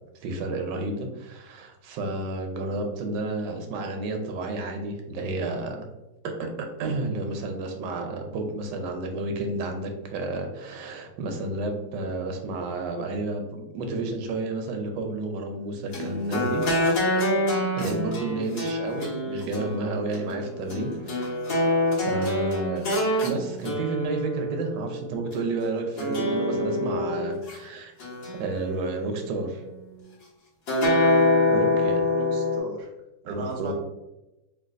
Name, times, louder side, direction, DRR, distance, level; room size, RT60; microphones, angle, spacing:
voice 1, 0.2-5.9 6.2-16.6 17.8-21.3 22.0-22.8 23.2-27.9 28.4-29.6 31.5-32.0 33.3-33.7, right 2 dB, 85° right, 4 dB, 1.2 m, -31 dB
sound 1, 15.9-25.4 26.0-27.6 28.0-29.1 30.7-32.6, left 1 dB, 70° left, 1.7 m, -26 dB
voice 2, 18.2-18.6 32.1-32.9 33.2-33.7, right 4 dB, 60° right, 1 dB, 0.7 m, -37 dB
3.9 x 2.2 x 2.5 m, 0.97 s
omnidirectional pair, 1.8 m